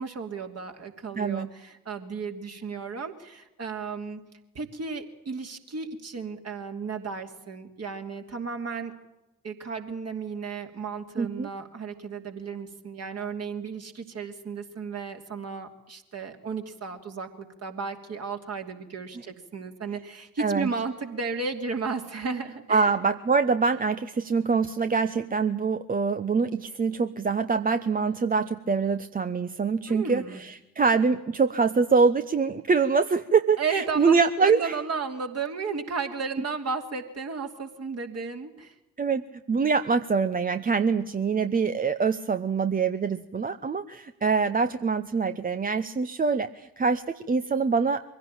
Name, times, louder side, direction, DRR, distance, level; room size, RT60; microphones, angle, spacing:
voice 1, 0.0-4.2 4.5-8.9 9.4-22.9 29.9-30.4 33.6-38.7, right 5 dB, 35° right, 5 dB, 2.8 m, -34 dB
voice 2, 1.2-1.5 11.2-11.5 20.4-20.7 22.7-34.7 39.0-48.0, right 5 dB, 20° right, 11 dB, 0.8 m, -24 dB
24.0 x 16.5 x 8.9 m, 0.99 s
figure-of-eight pair, 45°, 43 cm